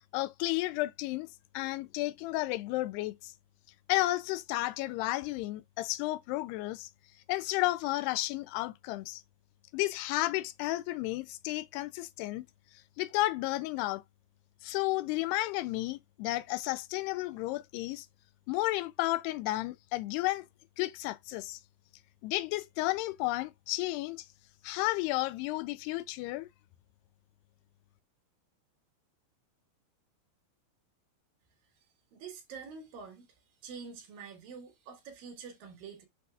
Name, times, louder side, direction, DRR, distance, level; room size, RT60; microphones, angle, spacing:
voice 1, 0.1-1.3 1.5-3.3 3.9-6.9 7.3-9.2 9.7-12.5 13.0-14.0 14.6-18.1 18.5-20.4 20.8-21.6 22.2-24.3 24.6-26.5, left 18 dB, 85° left, 2.6 m, -32 dB
voice 2, 32.1-33.3 33.6-36.1, right 5 dB, 65° right, 3.3 m, -46 dB
8.5 x 5.9 x 2.4 m
omnidirectional pair, 4.7 m